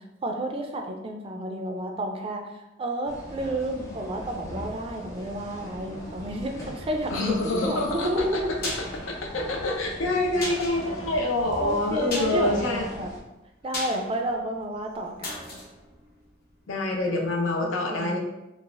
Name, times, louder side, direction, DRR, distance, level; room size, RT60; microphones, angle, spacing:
voice 1, 0.0-8.5 11.6-13.1 13.6-15.5 17.6-18.2, right 1 dB, 30° right, 3 dB, 0.3 m, -31 dB
sound 1, 3.0-13.2, equal, 15° left, 0.6 m, -40 dB
voice 2, 7.1-8.4 9.3-12.9 16.7-18.2, left 2 dB, 90° left, 0 dB, 0.6 m, -26 dB
sound 2, 8.4-17.1 17.4-17.5, left 2 dB, 50° left, 0.8 m, -39 dB
3.9 x 2.4 x 2.4 m, 0.97 s
head